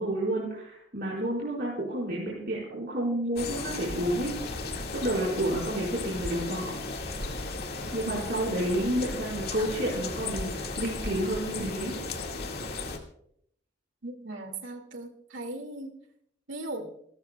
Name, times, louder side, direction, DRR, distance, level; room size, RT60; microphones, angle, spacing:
voice 1, 0.0-4.3 4.9-6.7 7.9-12.0, right 1 dB, 50° right, -5 dB, 4.7 m, -30 dB
sound 1, 3.4-13.0, left 3 dB, 55° left, 2.0 m, -35 dB
voice 2, 14.0-16.0 16.5-16.9, right 2 dB, 90° right, 5 dB, 2.4 m, -38 dB
29.0 x 13.0 x 2.3 m, 0.71 s
head